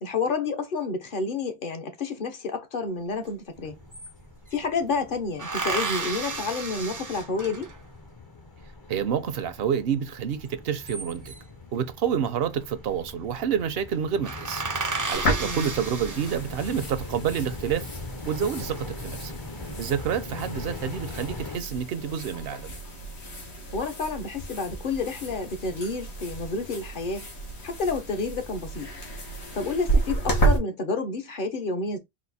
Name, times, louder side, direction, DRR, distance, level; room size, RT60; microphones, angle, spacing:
voice 1, 0.0-3.8 4.5-7.7 15.4-15.8 20.3-20.5 23.7-27.2 27.6-28.9 29.5-32.0, left 4 dB, 55° left, 1.0 m, -30 dB
sound 1, 3.3-3.4 3.6-4.6 5.4-7.9 10.6-11.6 12.7-13.1 13.4-13.5 13.9-14.0 14.2-16.8 17.4-18.0, right 3 dB, 35° right, 0.3 m, -33 dB
sound 2, 3.6-21.6, left 3 dB, 25° left, 0.6 m, -42 dB
voice 2, 8.9-11.3 11.7-14.6 15.1-17.9 18.3-19.3 19.8-22.7, right 8 dB, 70° right, 0.8 m, -28 dB
sound 3, 15.1-30.6, right 2 dB, 90° left, 1.6 m, -32 dB
4.2 x 2.5 x 4.0 m
omnidirectional pair, 1.1 m